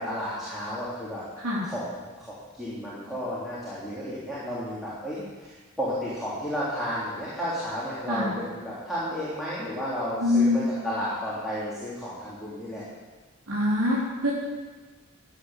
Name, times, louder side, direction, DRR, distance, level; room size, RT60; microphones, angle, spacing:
voice 1, 0.0-1.2 1.6-5.5 5.8-12.8, equal, ahead, -10 dB, 3.7 m, -32 dB
voice 2, 10.2-10.7 13.5-14.3, left 2 dB, 80° right, -7 dB, 3.9 m, -24 dB
14.5 x 9.1 x 7.5 m, 1.3 s
head